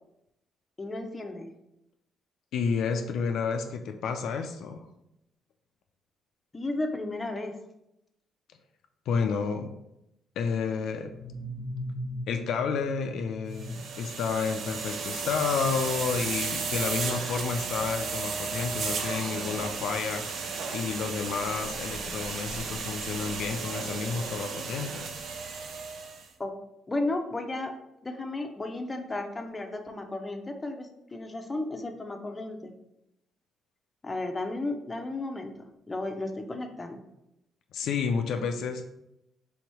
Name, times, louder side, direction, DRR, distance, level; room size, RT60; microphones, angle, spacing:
voice 1, 0.8-1.5 6.5-7.6 26.4-26.5 26.9-27.7 28.0-32.7 34.0-35.5 35.9-37.0, left 2 dB, 20° left, 4 dB, 0.6 m, -33 dB
voice 2, 2.5-4.9 9.1-9.7 10.4-11.1 12.3-25.1 37.7-38.8, left 5 dB, 75° left, 5 dB, 0.4 m, -30 dB
sound 1, 11.0-14.7, equal, 10° right, 1.3 m, -39 dB
sound 2, 13.5-26.3, right 5 dB, 65° right, 0.5 m, -34 dB
3.5 x 2.9 x 4.7 m, 0.85 s
cardioid pair, 90°, 0 cm